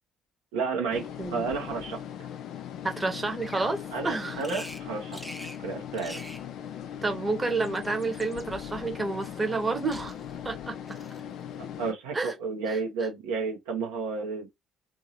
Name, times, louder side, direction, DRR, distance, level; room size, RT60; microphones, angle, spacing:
voice 1, 0.5-2.0 3.9-5.3 5.6-6.2 11.6-14.5, right 4 dB, 70° right, 0.8 m, -32 dB
sound 1, 0.9-11.9, left 9 dB, 60° left, 0.4 m, -39 dB
voice 2, 1.2-1.5 2.8-4.4 7.0-10.1 10.4-10.7 12.1-12.3 12.7-12.8, right 3 dB, 25° right, 1.0 m, -30 dB
Bird vocalization bird call bird song, 3.4-3.7 4.4-4.8 5.1-5.6 5.9-6.5 7.5-8.5 9.2-9.7 9.9-10.4 10.9-11.3, equal, ahead, 0.7 m, -44 dB
2.7 x 2.6 x 2.8 m
figure-of-eight pair, 50°, 0 cm